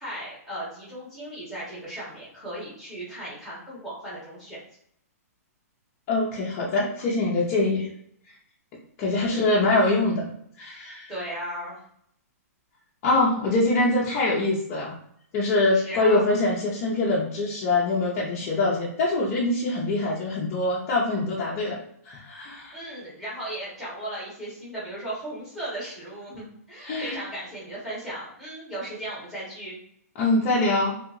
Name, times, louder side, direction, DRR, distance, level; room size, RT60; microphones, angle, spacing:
voice 1, 0.0-4.6 9.2-9.6 11.1-11.8 15.7-16.2 22.7-29.8, right 1 dB, 5° right, -8 dB, 1.0 m, -36 dB
voice 2, 6.1-7.9 9.0-10.3 10.6-11.1 13.0-15.0 15.3-21.8 22.0-22.8 26.8-27.2 30.2-31.0, left 2 dB, 20° left, -5 dB, 0.4 m, -24 dB
2.8 x 2.7 x 2.5 m, 0.69 s
hypercardioid pair, 180°, 9 cm